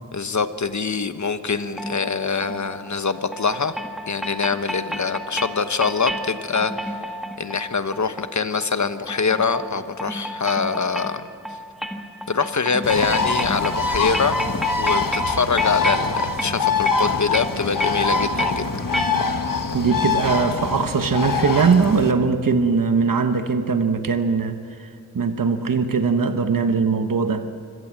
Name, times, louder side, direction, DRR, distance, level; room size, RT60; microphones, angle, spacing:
voice 1, 0.1-3.7 4.1-6.9 7.4-11.2 12.3-14.4 14.8-18.6, left 5 dB, 60° left, 10 dB, 1.2 m, -24 dB
sound 1, 1.8-19.6, equal, ahead, 1.4 m, -32 dB
Bird, 12.8-22.1, left 4 dB, 85° left, 1.5 m, -24 dB
voice 2, 19.7-24.9 25.1-27.4, right 5 dB, 85° right, 8 dB, 1.1 m, -20 dB
25.0 x 17.5 x 7.5 m, 2.3 s
wide cardioid pair, 60°, 32 cm